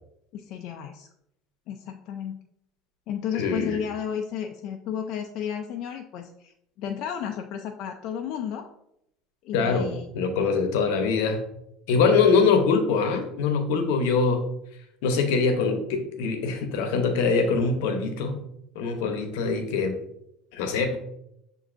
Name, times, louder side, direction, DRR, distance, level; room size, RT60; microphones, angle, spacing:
voice 1, 0.3-1.1 1.7-2.4 3.1-8.7 9.4-10.1, left 8 dB, 60° left, 3 dB, 0.3 m, -33 dB
voice 2, 3.3-3.8 9.5-9.9 10.1-11.4 11.9-14.4 15.0-18.4 18.7-20.0 20.5-21.0, left 4 dB, 80° left, 6 dB, 0.7 m, -23 dB
6.9 x 2.6 x 2.5 m, 0.78 s
cardioid pair, 130°, 0 cm